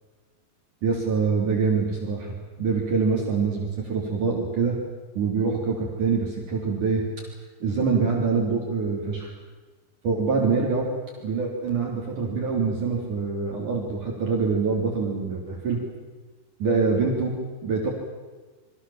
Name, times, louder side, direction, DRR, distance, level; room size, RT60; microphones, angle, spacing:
voice 1, 0.8-4.8 5.1-7.0 7.6-9.3 10.0-10.9 11.2-15.8 16.6-17.4 17.6-17.9, right 5 dB, 45° right, -1 dB, 4.8 m, -25 dB
29.0 x 24.5 x 7.4 m, 1.3 s
omnidirectional pair, 5.2 m